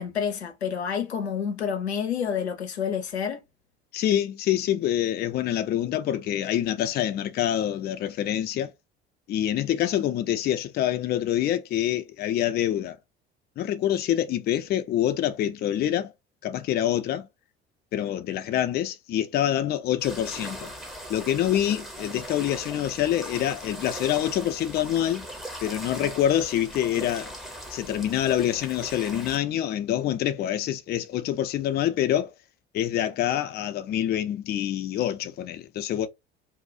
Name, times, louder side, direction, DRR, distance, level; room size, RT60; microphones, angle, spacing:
voice 1, 0.0-3.4, left 7 dB, 85° left, 0.6 m, -29 dB
voice 2, 3.9-8.7 9.3-13.0 13.6-16.1 16.4-17.3 17.9-20.7 21.1-25.3 25.6-27.3 27.7-32.3 32.7-36.1, left 11 dB, 30° left, 0.4 m, -26 dB
sound 1, 20.0-29.4, equal, ahead, 0.7 m, -39 dB
2.7 x 2.3 x 2.6 m
figure-of-eight pair, 60°, 32 cm